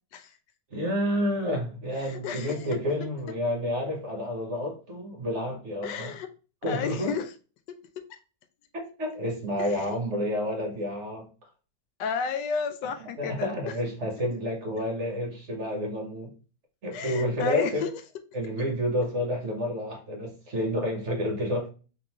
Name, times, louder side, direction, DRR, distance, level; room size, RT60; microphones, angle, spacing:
voice 1, 0.7-6.1 6.6-7.1 8.7-11.3 13.2-16.3 16.8-17.9 18.3-21.7, equal, 45° right, 1.2 m, -29 dB
voice 2, 2.0-2.6 5.8-6.3 6.7-7.3 7.7-7.8 9.6-9.9 12.0-13.5 16.9-18.0, left 6 dB, 85° left, 1.2 m, -32 dB
3.7 x 3.5 x 3.0 m
omnidirectional pair, 1.9 m